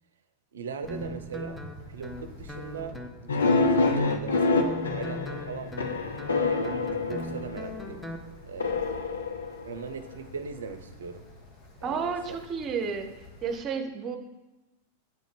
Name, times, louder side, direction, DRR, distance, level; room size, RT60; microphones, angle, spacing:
voice 1, 0.5-5.7 6.3-8.1 8.5-8.9 9.6-11.3 11.8-12.4, right 5 dB, 80° right, 9 dB, 0.5 m, -39 dB
Wind, 0.8-13.6, left 2 dB, 55° left, 1.3 m, -48 dB
Guitar, 0.9-8.3, equal, 5° left, 0.6 m, -40 dB
sound 1, 3.3-7.8 8.6-10.1, left 3 dB, 80° left, 0.5 m, -27 dB
voice 2, 11.8-13.1 13.4-14.2, right 5 dB, 35° right, 6 dB, 0.8 m, -31 dB
7.6 x 2.6 x 5.2 m, 1.1 s
hypercardioid pair, 100°, 0 cm